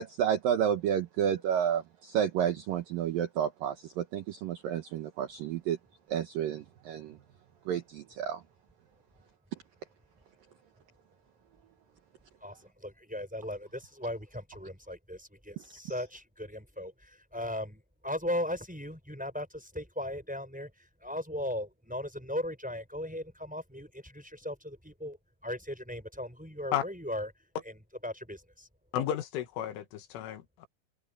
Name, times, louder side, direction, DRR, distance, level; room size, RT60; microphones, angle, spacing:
voice 1, 0.0-5.8 6.1-7.1 7.7-8.4, right 9 dB, 70° right, 2.2 m, -30 dB
voice 2, 12.4-25.2 25.4-27.5 28.0-28.7, left 1 dB, ahead, 4.4 m, -37 dB
voice 3, 28.9-30.7, left 10 dB, 85° left, 4.2 m, -33 dB
omnidirectional pair, 5.5 m